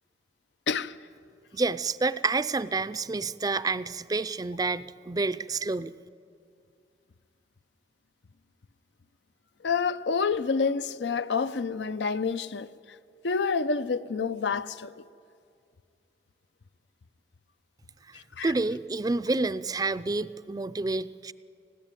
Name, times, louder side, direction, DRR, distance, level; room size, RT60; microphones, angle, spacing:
voice 1, 0.7-1.0 9.6-12.7 13.2-14.9 18.1-18.5, left 5 dB, 85° left, 0.6 m, -28 dB
voice 2, 1.5-5.9 18.1-21.3, right 3 dB, 20° right, 0.4 m, -29 dB
21.0 x 15.5 x 9.0 m
head